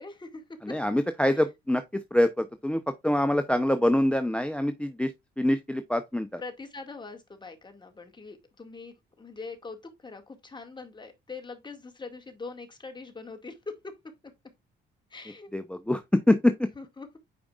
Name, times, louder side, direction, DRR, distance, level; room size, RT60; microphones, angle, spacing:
voice 1, 0.0-0.8 1.3-1.4 6.4-13.9 15.1-15.5 16.8-17.2, left 4 dB, 20° left, 2.1 m, -42 dB
voice 2, 0.6-5.1 5.4-6.4 15.5-16.7, left 1 dB, 5° left, 0.7 m, -25 dB
8.7 x 5.1 x 2.4 m
cardioid pair, 90°, 20 cm